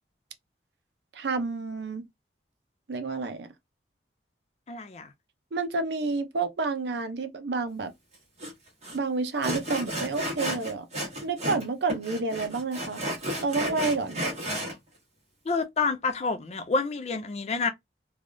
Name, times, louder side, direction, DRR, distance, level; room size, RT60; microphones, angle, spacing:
voice 1, 1.1-2.0 2.9-3.5 5.5-7.9 8.9-10.9 11.2-13.0 13.4-14.2, right 3 dB, 70° right, 0.6 m, -29 dB
voice 2, 4.7-5.1 15.5-17.7, left 4 dB, 35° left, 0.3 m, -28 dB
Sawing, 8.4-8.5 8.8-9.0 9.4-11.6 11.9-14.7, equal, 35° right, 1.3 m, -32 dB
3.3 x 2.3 x 2.5 m
head